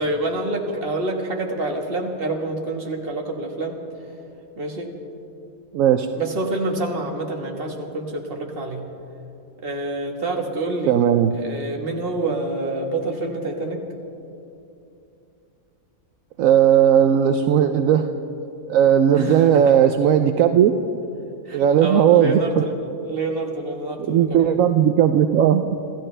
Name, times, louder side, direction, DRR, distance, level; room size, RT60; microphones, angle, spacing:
voice 1, 0.0-3.8 4.6-4.9 6.2-8.8 9.6-11.0 11.3-13.8 19.1-19.8 21.4-24.4, right 2 dB, 40° right, 1 dB, 1.8 m, -27 dB
voice 2, 5.7-6.1 10.9-11.3 16.4-18.1 18.7-20.8 21.5-22.4 24.0-25.7, right 9 dB, 75° right, 8 dB, 1.0 m, -16 dB
26.5 x 14.5 x 3.3 m, 2.8 s
omnidirectional pair, 1.5 m